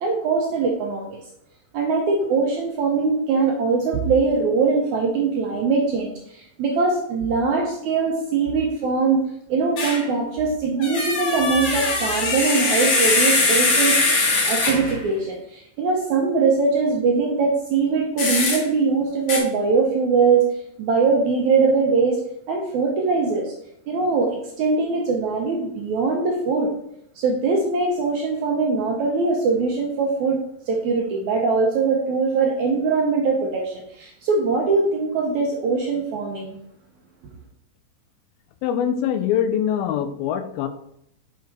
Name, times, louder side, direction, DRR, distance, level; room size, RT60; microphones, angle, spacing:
voice 1, 0.0-1.2 1.7-14.0 14.4-20.5 20.8-22.2 22.5-23.5 23.9-26.7 27.2-30.4 30.7-36.6, right 4 dB, 70° right, 1 dB, 1.9 m, -22 dB
sound 1, 9.8-10.0 10.8-15.0 18.2-18.6 19.3-19.4, left 3 dB, 50° left, 2.2 m, -21 dB
voice 2, 38.6-40.7, left 9 dB, 85° left, 10 dB, 2.5 m, -23 dB
6.4 x 4.7 x 4.6 m, 0.74 s
omnidirectional pair, 4.2 m